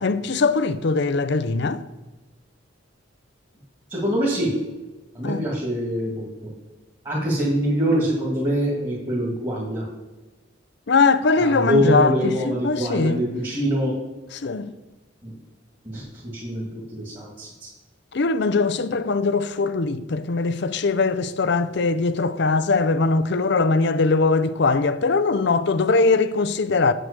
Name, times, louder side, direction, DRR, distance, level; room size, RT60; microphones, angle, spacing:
voice 1, 0.0-1.8 5.2-5.4 10.9-13.2 14.3-14.7 18.1-26.9, left 3 dB, 60° left, 0.5 m, -21 dB
voice 2, 3.9-4.5 5.1-6.5 7.0-9.9 11.4-13.9 15.2-15.3 15.8-17.7, equal, 20° right, 2.0 m, -24 dB
7.8 x 7.7 x 6.6 m
head